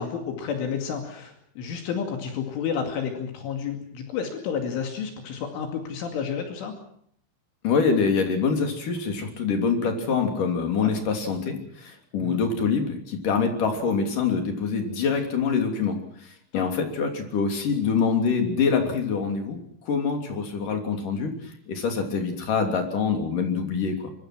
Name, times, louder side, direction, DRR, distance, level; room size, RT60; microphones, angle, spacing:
voice 1, 0.0-6.8 10.8-10.9 12.2-12.4 16.5-16.6, left 7 dB, 75° left, 4 dB, 4.8 m, -31 dB
voice 2, 7.6-21.3 21.7-24.0, left 5 dB, 45° left, 4 dB, 4.2 m, -25 dB
24.0 x 23.5 x 6.2 m, 0.65 s
omnidirectional pair, 5.7 m